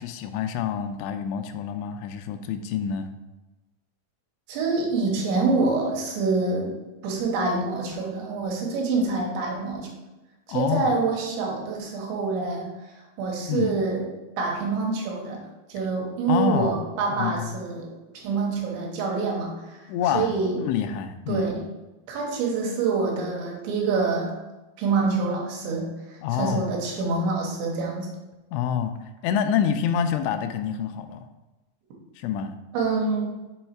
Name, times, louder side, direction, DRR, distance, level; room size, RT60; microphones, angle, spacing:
voice 1, 0.0-3.1 10.5-10.9 13.5-13.8 16.3-16.8 17.2-17.6 19.9-20.3 20.6-21.5 26.2-26.7 28.5-28.9 29.2-31.3 32.2-32.5, left 8 dB, 85° left, 8 dB, 2.9 m, -27 dB
voice 2, 4.5-6.7 7.0-9.9 10.5-12.7 13.2-15.4 15.7-19.8 20.1-20.6 21.3-21.6 22.1-24.4 24.8-25.9 26.3-28.1 32.7-33.3, right 4 dB, 75° right, -1 dB, 3.3 m, -26 dB
7.1 x 3.9 x 4.4 m, 1.1 s
omnidirectional pair, 5.2 m